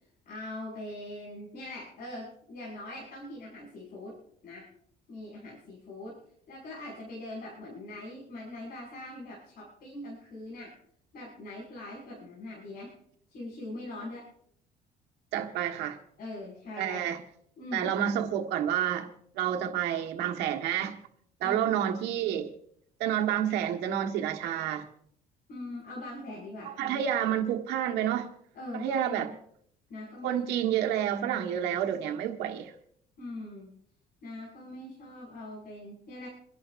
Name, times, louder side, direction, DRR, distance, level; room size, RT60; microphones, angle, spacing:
voice 1, 0.3-4.2 4.4-4.7 5.1-6.2 6.5-10.8 11.1-12.9 13.3-14.3 16.2-17.0 17.6-17.9 21.4-21.8 22.3-22.4 25.5-27.0 28.5-29.4 29.9-30.4 33.2-33.7 34.2-36.3, left 1 dB, 60° left, 5.9 m, -42 dB
voice 2, 15.3-16.0 16.8-17.2 17.7-19.1 19.3-21.0 21.4-22.5 23.0-24.8 26.6-28.3 28.7-29.3 30.2-32.7, right 10 dB, 85° right, 1.5 m, -29 dB
28.5 x 11.0 x 2.6 m
cardioid pair, 110°, 17 cm